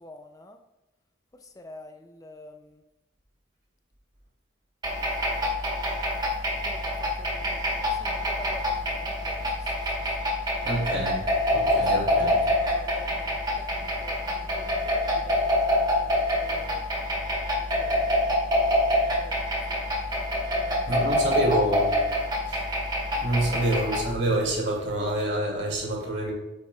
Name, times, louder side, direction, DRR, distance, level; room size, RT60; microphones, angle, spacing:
voice 1, 0.0-0.5 1.6-1.9 2.2-2.5 6.7-6.8 7.3-7.6 8.0-8.1 8.4-8.7 9.0-9.3 11.7-11.8 12.6-13.0 14.0-14.1 14.6-15.8 16.4-16.8 17.8-18.0 19.3-19.4 20.6-20.8 21.1-21.2 23.5-23.6, left 1 dB, 15° left, 5 dB, 0.4 m, -45 dB
sound 1, 4.8-24.1, left 1 dB, 20° right, 1.2 m, -26 dB
voice 2, 10.6-11.2 11.5-12.4 20.9-21.9 22.5-22.6 23.2-26.3, right 1 dB, 65° right, -2 dB, 2.6 m, -27 dB
8.6 x 8.2 x 2.4 m, 0.99 s
head